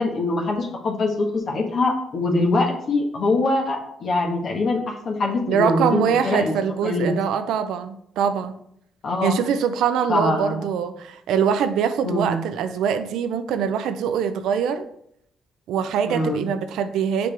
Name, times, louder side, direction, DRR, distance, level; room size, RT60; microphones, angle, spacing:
voice 1, 0.0-6.5 6.8-7.2 9.0-9.4 10.1-10.6 12.0-12.4 16.1-16.5, left 2 dB, 55° left, -1 dB, 1.3 m, -23 dB
voice 2, 5.5-8.5 9.2-14.9 15.7-17.3, right 7 dB, 85° right, 10 dB, 0.5 m, -23 dB
6.7 x 5.2 x 3.4 m, 0.72 s
cardioid pair, 90°, 0 cm